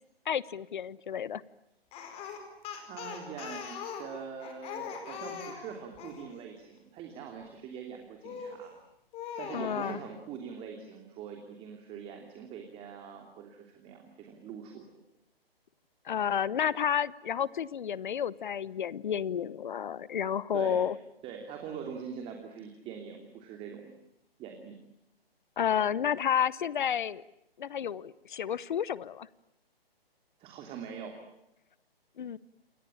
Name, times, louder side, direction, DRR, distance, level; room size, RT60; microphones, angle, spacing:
voice 1, 0.3-1.4 9.5-10.0 16.0-20.9 25.6-27.2 27.6-29.3 32.2-32.4, left 8 dB, 50° left, 20 dB, 1.1 m, -31 dB
Speech, 1.9-6.2 8.2-8.7 9.1-10.0, left 7 dB, 20° left, 4.8 m, -41 dB
voice 2, 2.8-8.7 9.4-14.8 20.5-20.9 21.2-23.8 24.4-24.8 30.4-31.2, right 7 dB, 20° right, 3 dB, 3.0 m, -43 dB
28.5 x 23.0 x 8.9 m, 0.82 s
figure-of-eight pair, 140°, 31 cm